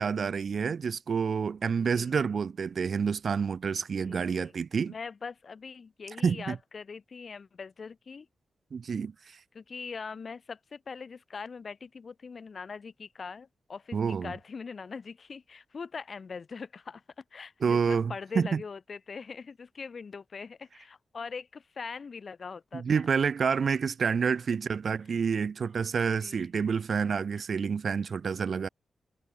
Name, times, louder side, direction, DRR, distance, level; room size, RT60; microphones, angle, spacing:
voice 1, 0.0-4.9 6.2-6.6 8.7-9.4 13.9-14.3 17.6-18.6 22.7-28.7, right 6 dB, 50° right, 1.2 m, -28 dB
voice 2, 1.8-2.1 4.0-4.5 4.9-8.3 9.5-23.1 26.2-26.4, left 5 dB, 40° left, 6.3 m, -42 dB
wide cardioid pair, 155°, 0 cm